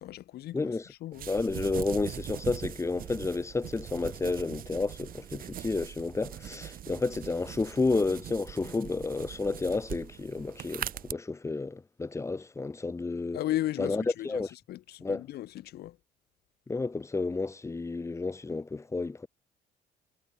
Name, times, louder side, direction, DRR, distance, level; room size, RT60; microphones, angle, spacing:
voice 1, 0.0-1.3 13.3-16.0, left 14 dB, 70° left, 3.3 m, -36 dB
sound 1, 1.1-11.1, right 11 dB, 60° right, 2.6 m, -41 dB
voice 2, 1.3-13.4 13.8-14.5 15.0-15.2 16.7-19.3, left 3 dB, 15° left, 1.4 m, -31 dB
cardioid pair, 110°, 17 cm